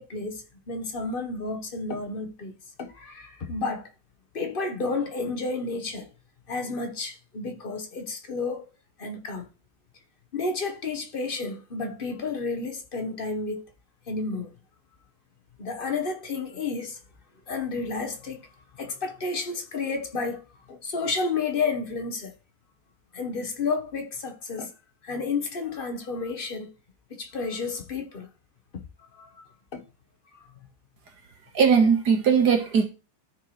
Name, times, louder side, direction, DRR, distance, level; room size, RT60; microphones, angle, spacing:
voice 1, 0.0-2.5 2.8-3.9 4.3-6.1 6.5-8.7 9.0-9.5 10.3-13.6 14.1-14.5 15.6-17.0 17.5-18.5 18.7-20.4 20.7-22.3 23.1-24.7 25.0-26.7 27.1-28.3 29.1-29.4 29.7-29.8 30.3-30.5, left 4 dB, 40° left, 0.8 m, -31 dB
voice 2, 31.5-32.8, right 6 dB, 55° right, 1.7 m, -19 dB
13.5 x 4.5 x 3.1 m
omnidirectional pair, 2.3 m